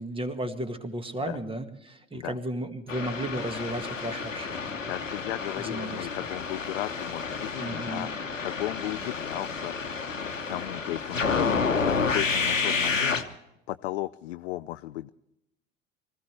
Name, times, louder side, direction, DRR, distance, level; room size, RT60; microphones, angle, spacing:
voice 1, 0.0-4.9 5.6-6.1 7.6-8.1, right 1 dB, 15° right, 8 dB, 1.9 m, -34 dB
sound 1, 2.9-13.2, left 5 dB, 85° left, 1.2 m, -30 dB
voice 2, 4.9-8.1 8.4-9.7 10.2-13.2 13.7-15.1, left 16 dB, 60° left, 11 dB, 0.6 m, -35 dB
24.5 x 15.5 x 3.4 m, 0.87 s
figure-of-eight pair, 70°, 38 cm